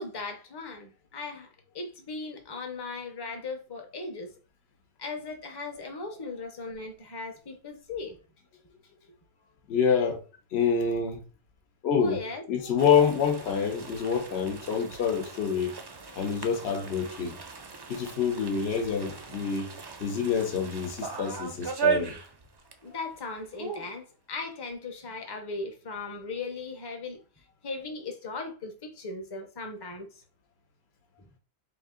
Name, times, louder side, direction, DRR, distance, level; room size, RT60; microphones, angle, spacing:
voice 1, 0.0-1.5 1.7-4.3 5.0-8.2 12.0-12.4 22.8-27.2 27.6-30.1, left 3 dB, 25° left, 0.6 m, -38 dB
voice 2, 9.7-10.2 10.5-11.2 11.8-12.2 12.5-15.7 16.1-17.3 17.9-19.7 20.0-22.1, left 6 dB, 80° left, 1.0 m, -27 dB
sound 1, 12.8-22.9 23.1-23.2 23.5-23.9, right 5 dB, 45° right, 0.3 m, -36 dB
3.8 x 2.6 x 3.6 m
omnidirectional pair, 1.1 m